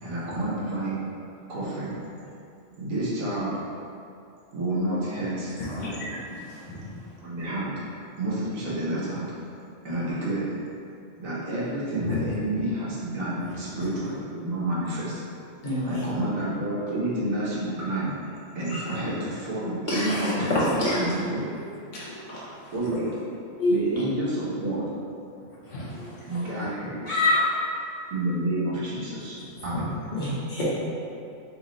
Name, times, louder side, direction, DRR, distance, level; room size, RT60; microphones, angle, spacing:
voice 1, 0.0-1.0 1.5-2.0 2.8-3.6 4.5-5.5 7.2-9.3 9.8-10.5 11.2-15.2 15.8-20.5 20.9-21.4 22.7-23.1 23.7-24.8 26.3-27.0 28.1-29.4 29.6-29.9, right 1 dB, 75° right, -7 dB, 1.3 m, -29 dB
voice 2, 5.6-6.8 12.0-12.2 13.4-13.5 18.7-18.8 20.1-20.7 21.9-22.2 25.6-26.4 29.7-29.8, left 1 dB, 65° left, -7 dB, 1.2 m, -31 dB
voice 3, 15.6-16.1 19.9-20.1 20.8-21.0 22.3-22.4 23.6-24.0 26.0-26.1 27.1-27.5 30.1-30.6, left 1 dB, 40° left, -9 dB, 0.9 m, -25 dB
3.2 x 3.1 x 3.8 m, 2.5 s
omnidirectional pair, 1.4 m